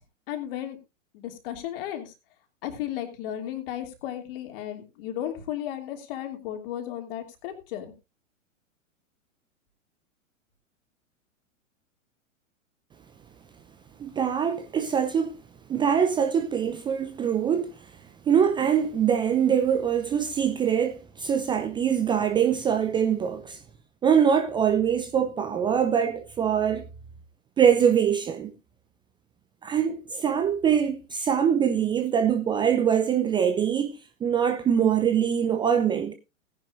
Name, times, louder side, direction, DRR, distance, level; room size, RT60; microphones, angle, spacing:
voice 1, 0.3-0.8 1.1-2.1 2.6-7.9, left 11 dB, 45° left, 2.9 m, -34 dB
voice 2, 14.0-15.3 15.7-17.8 18.3-23.6 24.0-26.9 27.6-28.5 29.6-36.1, right 8 dB, 10° right, 0.6 m, -23 dB
18.0 x 10.5 x 2.6 m
figure-of-eight pair, 105°, 40 cm